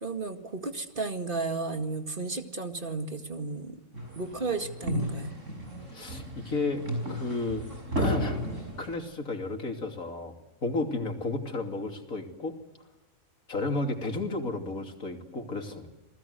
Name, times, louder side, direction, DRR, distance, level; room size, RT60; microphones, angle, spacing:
voice 1, 0.0-3.8 4.2-5.3, right 3 dB, 40° right, 6 dB, 2.3 m, -33 dB
sound 1, 3.9-9.0, equal, 65° right, 6.9 m, -33 dB
voice 2, 5.9-6.8 7.1-7.7 8.0-8.4 8.8-10.4 10.6-12.5 13.5-15.9, left 3 dB, 80° left, 4 dB, 3.3 m, -32 dB
28.5 x 19.5 x 8.1 m, 1.1 s
omnidirectional pair, 1.4 m